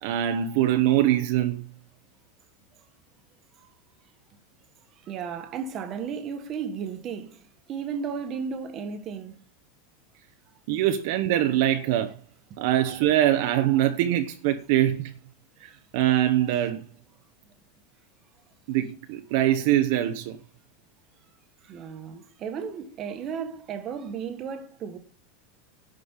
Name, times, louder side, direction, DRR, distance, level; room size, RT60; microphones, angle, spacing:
voice 1, 0.0-1.6 10.7-12.2 12.6-15.1 15.6-16.8 18.7-20.4, right 12 dB, 50° right, 0.9 m, -23 dB
voice 2, 5.0-7.4 7.7-9.4 15.6-15.8 21.6-25.0, right 6 dB, 25° right, 1.4 m, -34 dB
11.0 x 5.3 x 8.1 m
supercardioid pair, 175°, 0 cm